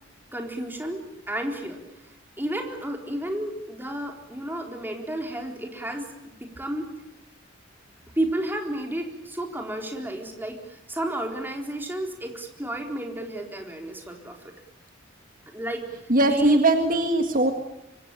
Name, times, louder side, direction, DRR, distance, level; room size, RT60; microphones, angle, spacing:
voice 1, 0.3-1.8 2.4-6.9 8.2-14.5 15.5-15.8 16.2-16.6, right 1 dB, 10° right, 3 dB, 4.0 m, -32 dB
voice 2, 16.1-17.5, right 2 dB, 45° right, 6 dB, 1.9 m, -20 dB
25.0 x 24.5 x 9.0 m, 0.89 s
head